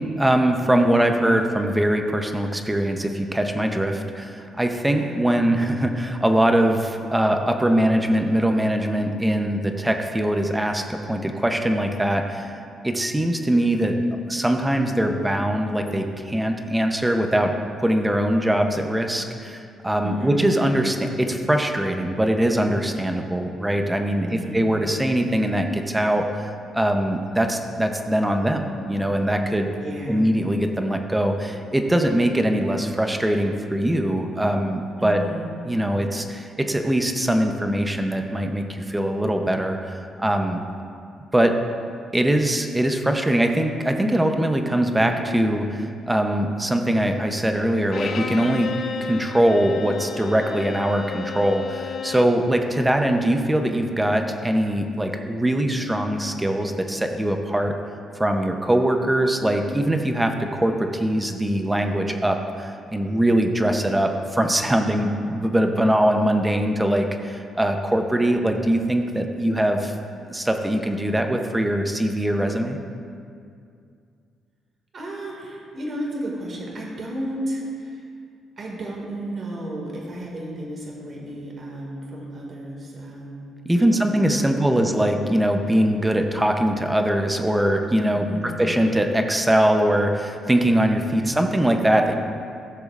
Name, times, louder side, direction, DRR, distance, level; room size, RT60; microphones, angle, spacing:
voice 1, 0.0-12.5 12.8-14.0 14.3-17.5 17.8-26.3 26.7-29.7 30.1-35.2 35.7-40.6 41.3-41.6 42.1-48.7 49.0-57.7 58.2-69.9 70.3-72.8 83.7-92.1, right 1 dB, 10° right, 4 dB, 0.8 m, -22 dB
voice 2, 20.0-20.4 24.2-24.6 29.8-30.4 35.0-35.5 74.9-78.1 78.6-83.4 83.8-84.7 88.1-88.7 91.1-91.6, right 1 dB, 50° right, -2 dB, 2.1 m, -33 dB
Bowed string instrument, 47.9-52.4, left 6 dB, 60° left, 0.6 m, -33 dB
16.0 x 6.6 x 2.5 m, 2.4 s
cardioid pair, 90°, 0 cm